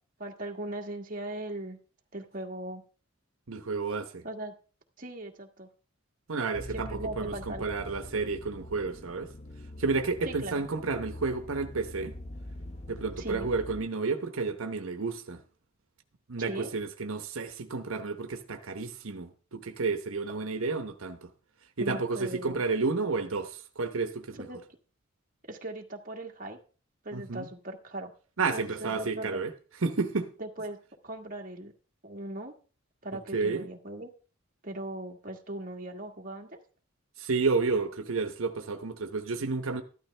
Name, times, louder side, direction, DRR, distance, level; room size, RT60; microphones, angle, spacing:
voice 1, 0.2-1.8 2.1-2.8 4.2-4.5 5.0-5.7 6.7-7.6 10.2-10.6 13.2-13.5 16.4-16.7 21.8-22.6 24.4-24.6 25.5-26.6 27.0-28.1 28.5-29.4 30.4-30.8 31.0-31.7 32.0-32.5 33.0-34.1 34.6-36.6, right 1 dB, 40° right, 1.6 m, -39 dB
voice 2, 3.5-4.2 6.3-9.3 9.8-12.1 12.9-15.4 16.3-21.3 21.8-24.5 27.1-27.5 28.4-29.5 29.8-30.3 33.3-33.7 37.2-39.8, right 4 dB, 85° right, 1.0 m, -31 dB
sound 1, 6.5-13.8, left 1 dB, 35° left, 0.9 m, -44 dB
14.0 x 12.0 x 3.3 m
head